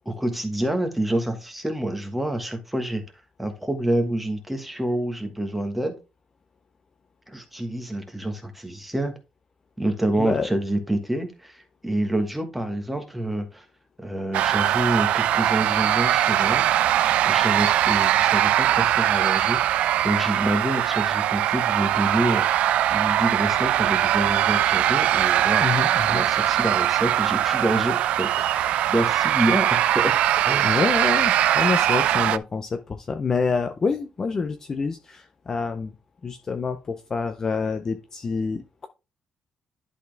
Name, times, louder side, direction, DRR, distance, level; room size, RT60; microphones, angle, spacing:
voice 1, 0.0-3.0 3.4-6.0 7.3-9.1 9.8-13.7 14.0-16.7 17.2-25.7 26.1-30.8, right 1 dB, 5° right, 1.3 m, -27 dB
voice 2, 10.2-10.5 25.6-26.2 30.6-35.9 36.2-38.9, left 5 dB, 25° left, 0.5 m, -27 dB
sound 1, 14.3-32.4, right 12 dB, 75° right, 0.4 m, -21 dB
11.0 x 4.1 x 3.4 m
cardioid pair, 175°, 2 cm